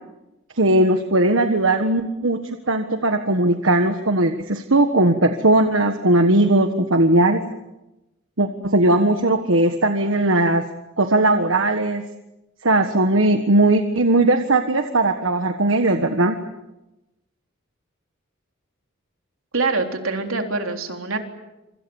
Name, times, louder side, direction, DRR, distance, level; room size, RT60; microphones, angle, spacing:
voice 1, 0.6-7.4 8.4-10.6 11.0-12.0 12.6-16.4, right 2 dB, 70° right, 7 dB, 1.5 m, -18 dB
voice 2, 19.5-21.2, right 3 dB, 90° right, 4 dB, 3.7 m, -24 dB
26.5 x 25.5 x 7.2 m, 0.97 s
head